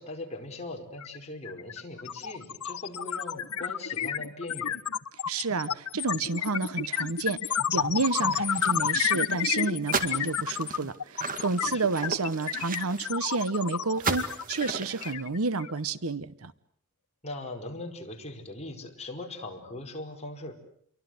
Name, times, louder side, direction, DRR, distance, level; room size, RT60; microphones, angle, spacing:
voice 1, 0.0-4.8 11.6-11.9 17.2-20.5, left 2 dB, 30° left, 2 dB, 4.8 m, -40 dB
sound 1, 1.0-1.2 1.5-15.8, left 8 dB, 85° left, 1.1 m, -30 dB
voice 2, 5.3-16.5, right 4 dB, 70° right, 16 dB, 1.0 m, -30 dB
sound 2, 8.0-9.0 9.3-9.5 9.8-13.5 14.0-15.1, right 4 dB, 40° right, 2.1 m, -35 dB
29.0 x 23.5 x 7.9 m, 0.66 s
head